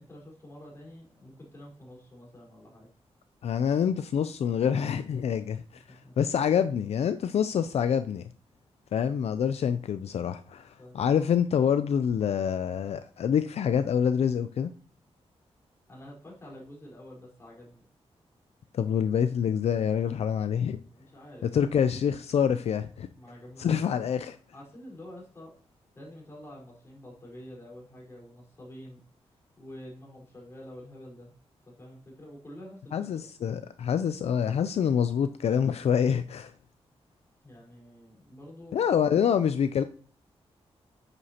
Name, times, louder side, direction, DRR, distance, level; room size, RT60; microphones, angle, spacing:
voice 1, 0.0-2.9 5.9-6.2 10.8-11.1 15.9-17.8 20.9-22.0 23.1-24.1 24.5-25.5 25.9-29.0 29.6-31.3 31.6-33.3 37.4-38.8, left 1 dB, 25° left, 4.3 m, -48 dB
voice 2, 3.4-8.2 8.9-14.7 18.7-20.8 21.5-23.1 23.6-24.3 32.9-36.5 38.7-39.8, left 8 dB, 70° left, 0.4 m, -26 dB
9.6 x 8.0 x 2.9 m
wide cardioid pair, 120°, 11 cm